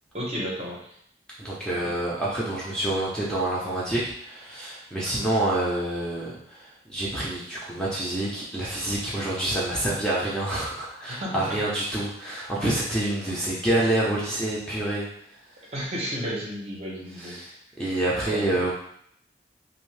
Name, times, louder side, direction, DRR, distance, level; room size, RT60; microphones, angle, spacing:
voice 1, 0.1-0.9 1.8-2.0 5.1-5.3 11.1-11.6 15.7-17.4 18.2-18.7, equal, 35° right, -4 dB, 0.7 m, -33 dB
voice 2, 1.4-6.6 6.9-15.1 17.2-18.7, right 1 dB, 5° left, -7 dB, 0.6 m, -27 dB
2.6 x 2.6 x 3.2 m, 0.67 s
head